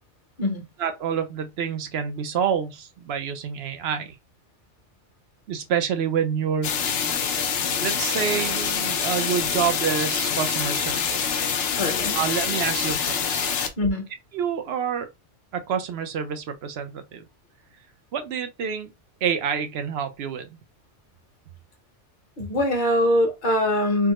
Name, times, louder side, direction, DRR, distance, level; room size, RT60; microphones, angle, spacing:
voice 1, 0.8-4.2 5.5-6.8 7.8-11.5 12.1-13.5 14.3-15.1 15.5-17.3 18.1-18.9 19.2-20.6, right 7 dB, 65° right, 0.8 m, -28 dB
sound 1, 6.6-13.7, left 7 dB, 65° left, 0.8 m, -25 dB
voice 2, 11.8-12.2 13.8-14.1 22.4-24.1, left 1 dB, 45° left, 1.0 m, -22 dB
3.5 x 2.0 x 2.9 m
omnidirectional pair, 1.2 m